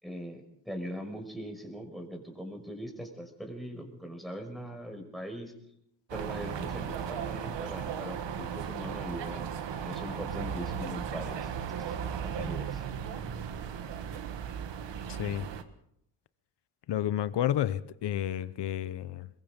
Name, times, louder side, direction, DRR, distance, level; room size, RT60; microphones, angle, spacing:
voice 1, 0.0-5.5 6.1-11.5 11.8-12.8, equal, ahead, 5.7 m, -41 dB
sound 1, 6.1-15.6, right 7 dB, 85° right, 1.7 m, -36 dB
voice 2, 15.1-15.5 16.9-19.3, left 11 dB, 75° left, 0.9 m, -31 dB
23.5 x 22.0 x 5.3 m
cardioid pair, 90°, 42 cm